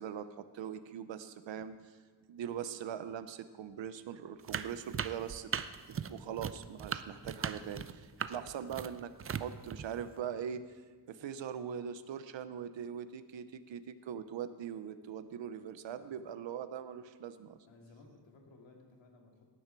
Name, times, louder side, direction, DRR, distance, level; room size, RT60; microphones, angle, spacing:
voice 1, 0.0-2.0 2.3-5.5 5.9-10.6 11.1-17.6, right 8 dB, 85° right, 12 dB, 0.8 m, -41 dB
sound 1, 4.5-10.2, right 7 dB, 35° right, 0.4 m, -39 dB
voice 2, 6.9-7.2 8.1-8.3 16.0-16.2 17.7-19.4, left 3 dB, 90° left, 1 dB, 2.5 m, -59 dB
17.5 x 10.0 x 4.6 m, 1.6 s
wide cardioid pair, 170°, 44 cm